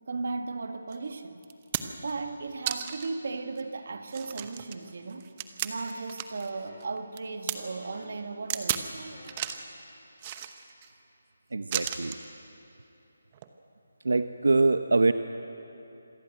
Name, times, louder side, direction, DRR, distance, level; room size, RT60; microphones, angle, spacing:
voice 1, 0.1-1.4 2.0-5.3 5.6-9.3, right 3 dB, 55° right, 8 dB, 1.8 m, -36 dB
sound 1, 0.9-1.0 1.4-2.1 2.7-3.1 3.6-3.7 4.1-6.5 6.8-7.6 8.5-8.9 9.2-9.7 10.2-10.9 11.7-12.2 13.3-13.5, right 10 dB, 20° right, 0.9 m, -34 dB
sound 2, 6.4-7.0 7.8-8.3 9.1-9.6 10.8-10.9, left 3 dB, 40° left, 3.3 m, -52 dB
voice 2, 11.5-12.2 14.0-15.1, right 3 dB, 85° right, 10 dB, 0.9 m, -24 dB
26.5 x 15.5 x 9.1 m, 2.9 s
hypercardioid pair, 170°, 0 cm